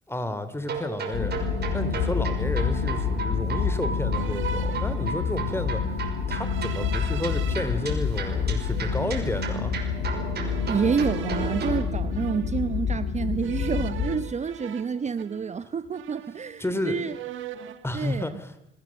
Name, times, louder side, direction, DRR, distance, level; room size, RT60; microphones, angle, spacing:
voice 1, 0.1-1.4 1.7-5.8 6.3-9.7 16.6-17.0 17.8-18.5, left 1 dB, 10° left, 12 dB, 3.0 m, -31 dB
sound 1, 0.6-11.8, right 5 dB, 55° right, 5.8 m, -35 dB
sound 2, 1.1-14.2, left 6 dB, 90° left, 3.9 m, -28 dB
sound 3, 2.8-3.4 4.1-5.6 6.4-7.6 8.1-9.7 10.5-12.8 13.4-15.7 15.9-16.7 16.9-17.9, right 10 dB, 80° right, 1.7 m, -41 dB
voice 2, 10.7-17.2 17.9-18.3, right 6 dB, 35° right, 13 dB, 0.9 m, -28 dB
28.5 x 19.0 x 7.5 m, 0.88 s
cardioid pair, 90°, 20 cm